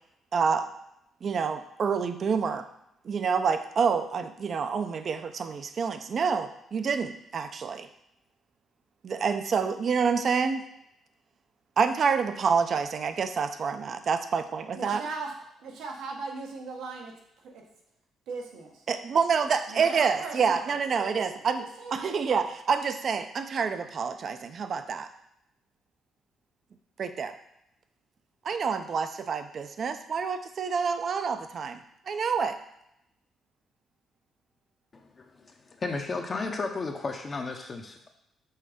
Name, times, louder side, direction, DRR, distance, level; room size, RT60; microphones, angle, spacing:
voice 1, 0.3-0.7 1.2-2.6 3.0-7.9 9.0-10.6 11.8-15.0 18.9-21.6 21.9-25.1 27.0-27.3 28.4-32.6, right 6 dB, 50° right, 9 dB, 0.6 m, -27 dB
voice 2, 14.7-15.3 15.6-17.1 18.3-18.8 19.7-22.1, right 4 dB, 90° right, 0 dB, 1.3 m, -39 dB
voice 3, 34.9-38.1, left 3 dB, 40° left, 2 dB, 0.8 m, -34 dB
5.6 x 3.8 x 5.1 m, 0.79 s
cardioid pair, 90°, 0 cm